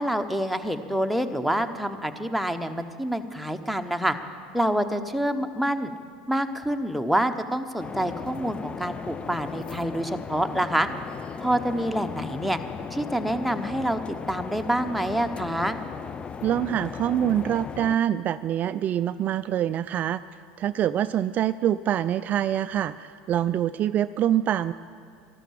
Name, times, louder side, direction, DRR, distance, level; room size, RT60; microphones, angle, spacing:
voice 1, 0.0-4.2 4.5-5.9 6.3-10.9 11.4-12.6 12.9-14.0 14.3-15.8, equal, ahead, 10 dB, 1.0 m, -27 dB
sound 1, 7.8-18.0, left 6 dB, 25° left, 0.5 m, -37 dB
voice 2, 16.4-20.2 20.6-24.7, right 11 dB, 40° right, 13 dB, 0.3 m, -25 dB
12.5 x 12.0 x 7.6 m, 2.3 s
hypercardioid pair, 90°, 4 cm